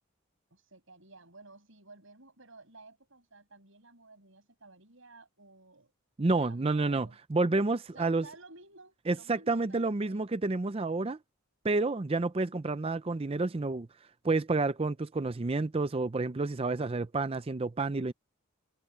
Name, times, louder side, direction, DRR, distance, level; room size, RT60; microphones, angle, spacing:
voice 1, 0.5-5.9 6.2-7.2 7.9-10.3, right 3 dB, 65° right, 7.4 m, -54 dB
voice 2, 6.2-8.2 9.1-11.2 11.6-13.9 14.2-18.1, right 3 dB, 25° right, 0.5 m, -29 dB
head